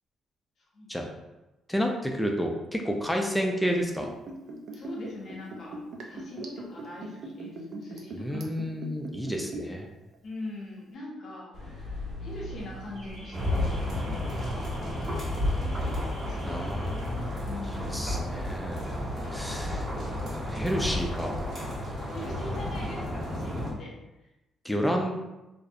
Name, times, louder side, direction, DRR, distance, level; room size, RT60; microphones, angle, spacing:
voice 1, 1.7-4.1 8.1-9.9 16.4-17.3 17.9-18.9 19.3-19.9 20.3-21.4 24.6-25.1, equal, 5° left, 2 dB, 0.3 m, -30 dB
Liquid, 3.7-9.9 10.1-10.2, right 2 dB, 65° right, 0.4 m, -40 dB
voice 2, 4.7-8.4 9.3-9.6 10.2-15.5 16.3-16.9 17.5-18.0 22.1-24.3, left 2 dB, 60° left, -3 dB, 0.7 m, -43 dB
Car / Alarm, 11.5-22.7, left 1 dB, 85° right, 1.3 m, -45 dB
sound 1, 13.3-23.7, left 1 dB, 45° right, 1.2 m, -32 dB
2.4 x 2.1 x 2.6 m, 0.98 s
cardioid pair, 90°, 0 cm